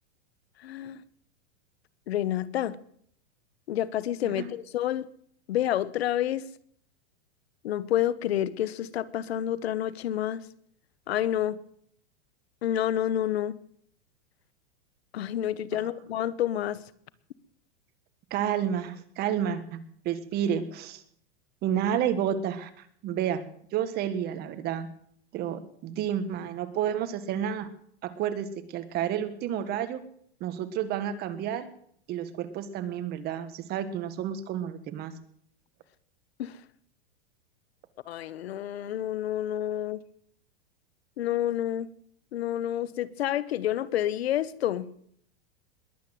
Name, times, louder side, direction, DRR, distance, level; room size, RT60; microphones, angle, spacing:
voice 1, 0.6-1.0 2.1-2.8 3.7-5.1 5.5-6.4 7.6-10.4 11.1-11.6 12.6-13.6 15.1-16.8 36.4-36.6 38.1-40.0 41.2-41.9 42.3-44.9, left 12 dB, 85° left, 17 dB, 1.1 m, -29 dB
voice 2, 18.3-19.8 20.0-21.0 21.6-22.7 23.0-23.4 23.7-24.9 25.3-27.7 28.0-30.0 30.4-31.7 32.1-35.1, right 9 dB, 30° right, 11 dB, 1.6 m, -30 dB
21.0 x 8.7 x 7.7 m, 0.65 s
supercardioid pair, 150°, 31 cm